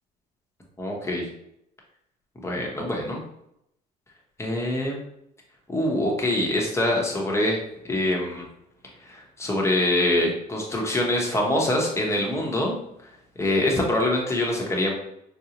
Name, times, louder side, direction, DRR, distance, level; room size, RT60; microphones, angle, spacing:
voice 1, 0.8-1.3 2.4-3.2 4.4-5.0 5.7-7.6 7.9-8.5 9.0-12.8 13.4-14.9, left 1 dB, 15° left, -1 dB, 1.0 m, -24 dB
3.9 x 2.7 x 2.9 m, 0.79 s
cardioid pair, 110°, 17 cm